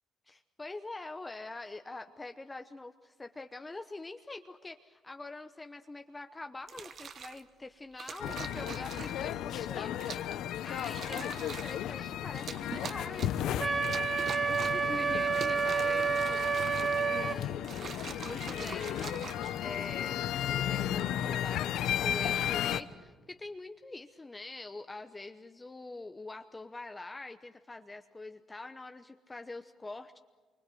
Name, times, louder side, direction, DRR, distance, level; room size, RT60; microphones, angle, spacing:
voice 1, 0.3-13.8 14.4-17.8 18.2-19.3 19.6-30.2, left 2 dB, 20° left, 7 dB, 0.9 m, -45 dB
sound 1, 6.6-7.4 8.0-9.3 10.0-10.4 10.7-11.8 12.3-13.5 13.8-14.9 15.3-17.2 17.6-20.0 20.7-21.1, right 6 dB, 50° right, 1.2 m, -44 dB
sound 2, 8.2-22.8, left 11 dB, 80° left, 0.9 m, -34 dB
Wind instrument woodwind instrument, 13.6-17.4, right 5 dB, 30° right, 0.9 m, -29 dB
26.0 x 24.5 x 7.8 m, 1.4 s
cardioid pair, 95°, 0 cm